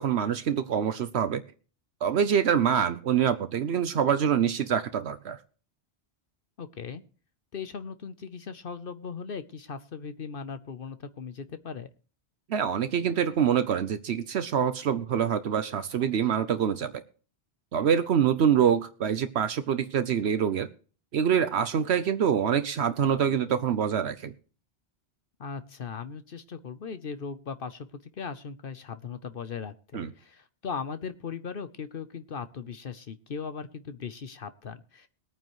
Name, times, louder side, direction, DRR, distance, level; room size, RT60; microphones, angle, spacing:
voice 1, 0.0-1.4 2.0-5.4 12.5-17.0 17.7-20.7 21.1-24.3 29.9-30.1, right 8 dB, 75° right, 11 dB, 1.0 m, -25 dB
voice 2, 6.6-7.0 7.5-11.9 25.4-27.9 28.1-35.1, left 6 dB, 60° left, 11 dB, 0.9 m, -38 dB
21.5 x 9.1 x 3.1 m, 0.39 s
omnidirectional pair, 1.1 m